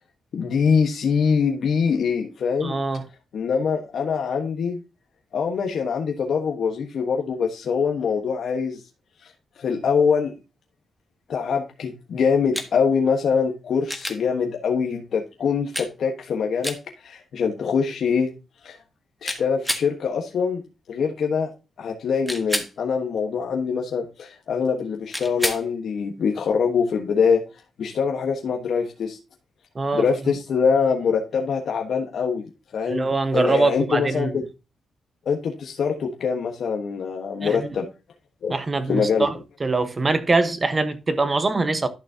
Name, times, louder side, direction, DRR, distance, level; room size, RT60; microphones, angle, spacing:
voice 1, 0.3-2.8 3.3-4.8 5.3-8.8 9.6-10.3 11.3-18.3 18.6-18.8 19.2-20.6 20.9-21.5 21.8-27.4 27.8-29.2 29.9-34.4 35.2-37.9 38.4-38.5 38.9-39.2, left 6 dB, 70° left, 1.3 m, -24 dB
voice 2, 2.6-3.0 29.7-30.0 32.9-34.3 37.4-37.6 38.5-39.3 39.6-41.9, right 3 dB, 30° right, 1.1 m, -23 dB
sound 1, 12.5-12.7 13.9-14.2 15.7-15.9 16.6-16.8 19.3-19.9 22.3-22.7 25.1-25.6 27.9-28.0, equal, ahead, 1.5 m, -28 dB
11.5 x 6.2 x 2.8 m
cardioid pair, 100°, 0 cm